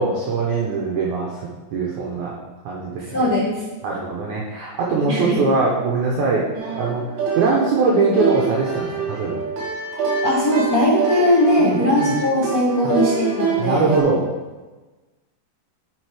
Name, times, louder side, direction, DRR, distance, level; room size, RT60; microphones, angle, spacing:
voice 1, 0.0-2.3 2.6-3.3 3.8-6.4 6.7-9.4 11.6-12.1 12.8-12.9 13.6-14.2, right 4 dB, 90° right, -3 dB, 1.7 m, -22 dB
voice 2, 3.0-3.6 5.1-5.4 10.2-13.9, left 1 dB, 55° left, -7 dB, 1.0 m, -19 dB
sound 1, 6.5-14.0, right 5 dB, 70° right, 3.5 m, -26 dB
7.8 x 5.2 x 4.9 m, 1.2 s
omnidirectional pair, 4.8 m